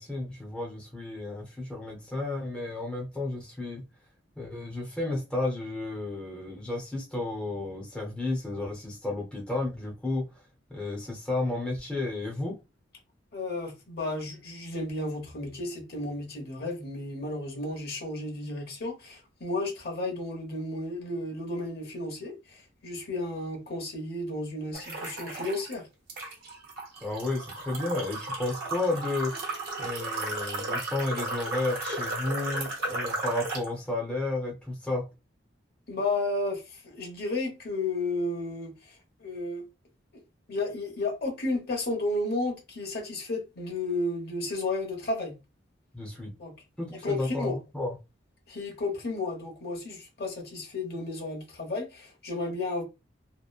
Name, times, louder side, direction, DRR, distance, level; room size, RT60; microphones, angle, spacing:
voice 1, 0.0-3.8 4.4-10.3 10.7-12.6 27.0-29.3 29.8-35.1 45.9-46.3 46.8-47.9, left 2 dB, 5° left, 0.7 m, -32 dB
voice 2, 13.3-25.8 35.9-39.6 40.5-45.3 46.4-46.5 46.9-47.6 48.5-52.8, left 2 dB, 55° left, 0.9 m, -33 dB
sound 1, 24.7-25.7 26.1-33.7, right 2 dB, 60° right, 1.0 m, -34 dB
2.9 x 2.1 x 2.3 m
head